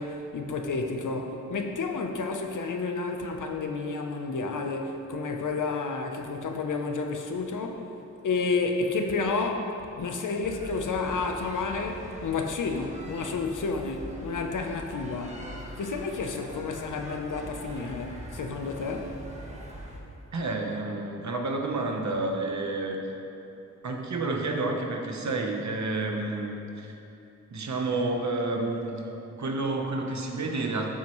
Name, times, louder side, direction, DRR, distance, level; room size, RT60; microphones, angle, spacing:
voice 1, 0.0-7.8 8.2-15.5 15.8-19.2, left 4 dB, 85° left, 4 dB, 0.9 m, -31 dB
sound 1, 10.4-20.0, equal, 20° right, 1.3 m, -42 dB
voice 2, 20.3-23.0 23.8-26.9 27.5-30.9, right 2 dB, 65° right, 2 dB, 1.1 m, -30 dB
12.0 x 7.9 x 3.1 m, 2.8 s
wide cardioid pair, 110°, 30 cm